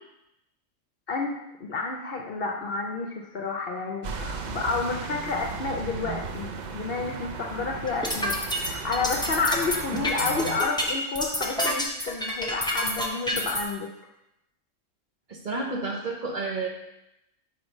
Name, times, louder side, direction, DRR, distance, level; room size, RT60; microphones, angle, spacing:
voice 1, 1.1-13.9, left 4 dB, 55° left, 1 dB, 0.7 m, -30 dB
sound 1, 4.0-10.6, right 5 dB, 75° right, 0.4 m, -36 dB
sound 2, 7.9-13.6, left 1 dB, 5° left, 0.4 m, -28 dB
voice 2, 15.3-16.7, right 3 dB, 45° right, -1 dB, 0.9 m, -30 dB
4.8 x 4.4 x 5.2 m, 0.88 s
omnidirectional pair, 1.3 m